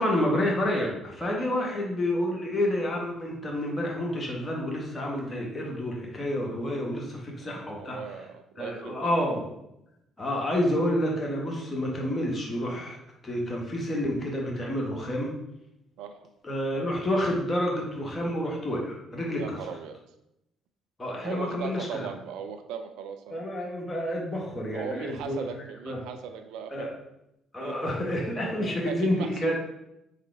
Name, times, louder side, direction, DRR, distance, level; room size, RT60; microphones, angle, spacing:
voice 1, 0.0-8.0 8.6-9.5 10.2-13.0 13.2-15.3 16.4-19.6 21.0-22.1 23.3-25.4 25.9-26.0 26.7-26.9 27.5-29.5, left 1 dB, 25° left, -2 dB, 1.5 m, -29 dB
voice 2, 1.4-1.7 7.4-9.3 16.0-16.3 19.4-20.0 21.2-23.4 24.7-26.9 27.6-27.8 28.4-29.5, right 7 dB, 70° right, 7 dB, 0.4 m, -38 dB
4.2 x 3.7 x 3.5 m, 0.84 s
hypercardioid pair, 50°, 0 cm